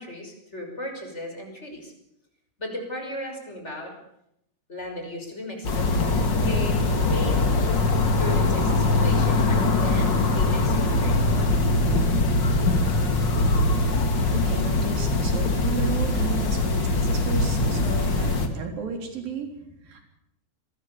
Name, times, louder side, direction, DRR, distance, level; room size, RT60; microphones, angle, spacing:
voice 1, 0.0-1.9 2.6-3.9 4.7-6.2 6.4-7.8 8.1-11.5, left 1 dB, 15° left, 2 dB, 6.0 m, -36 dB
sound 1, 5.6-18.5, left 2 dB, 35° left, 2.5 m, -22 dB
voice 2, 14.3-20.0, right 6 dB, 65° right, 4 dB, 5.4 m, -34 dB
26.5 x 21.0 x 7.1 m, 0.79 s
omnidirectional pair, 4.4 m